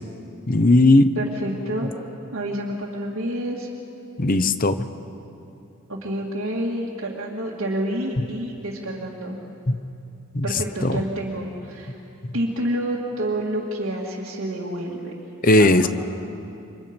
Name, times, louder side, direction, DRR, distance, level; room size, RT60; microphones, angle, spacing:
voice 1, 0.5-1.1 4.2-4.9 9.7-9.8 10.3-10.4 10.8-11.0 12.2-12.3 15.4-15.9, left 2 dB, 40° left, 11 dB, 0.9 m, -17 dB
voice 2, 1.2-1.9 2.3-3.7 5.9-9.4 10.4-12.0 12.3-15.1 15.6-15.9, right 1 dB, 65° right, -4 dB, 2.2 m, -28 dB
29.0 x 24.5 x 5.3 m, 2.7 s
head